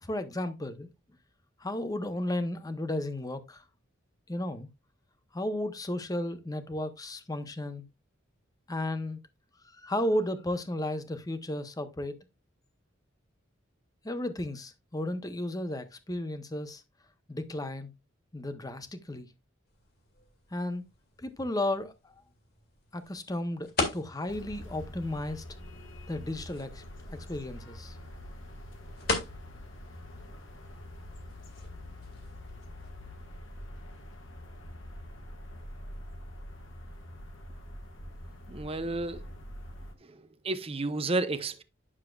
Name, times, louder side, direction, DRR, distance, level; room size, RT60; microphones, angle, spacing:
voice 1, 0.0-0.9 1.6-3.6 4.3-4.7 5.3-7.8 8.7-9.2 9.6-12.2 14.0-16.8 17.3-17.9 18.3-19.3 20.5-20.8 21.2-22.1 22.9-25.4 26.1-28.0, left 1 dB, 20° left, 0.8 m, -34 dB
sound 1, 19.7-32.9, left 3 dB, 50° left, 2.2 m, -41 dB
sound 2, 24.3-39.9, left 1 dB, 75° left, 1.6 m, -45 dB
voice 2, 38.5-39.3 40.0-41.6, right 2 dB, 30° right, 0.7 m, -32 dB
9.9 x 6.4 x 2.3 m
head